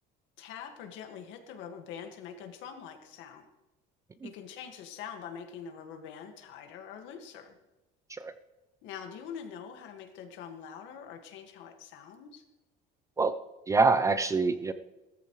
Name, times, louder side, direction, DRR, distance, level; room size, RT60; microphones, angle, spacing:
voice 1, 0.4-3.5 4.2-7.6 8.8-12.4, left 7 dB, 75° left, 5 dB, 2.0 m, -44 dB
voice 2, 13.7-14.7, right 4 dB, 15° right, 12 dB, 0.4 m, -25 dB
17.5 x 13.5 x 3.2 m, 1.1 s
cardioid pair, 165°, 20 cm